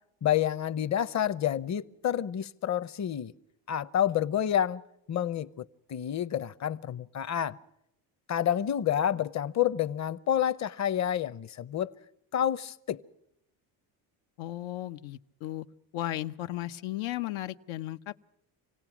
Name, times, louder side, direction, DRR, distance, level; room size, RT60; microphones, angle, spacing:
voice 1, 0.2-3.3 3.7-4.8 5.1-7.6 8.3-11.9 12.3-13.0, left 10 dB, 35° left, 0.7 m, -29 dB
voice 2, 14.4-15.7 15.9-18.2, left 14 dB, 85° left, 0.9 m, -35 dB
27.0 x 17.5 x 6.1 m
cardioid pair, 125°, 46 cm